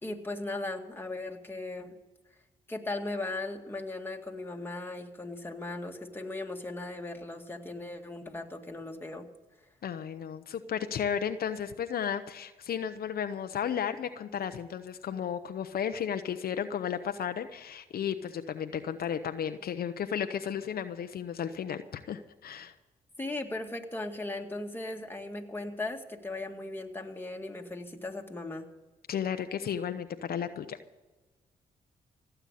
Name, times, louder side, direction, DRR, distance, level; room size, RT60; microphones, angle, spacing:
voice 1, 0.0-1.9 2.7-9.3 23.2-28.7, left 2 dB, 15° left, 2 dB, 2.1 m, -37 dB
voice 2, 9.8-22.7 29.1-30.8, left 8 dB, 65° left, 8 dB, 0.8 m, -34 dB
17.0 x 8.0 x 8.4 m, 1.2 s
cardioid pair, 60°, 16 cm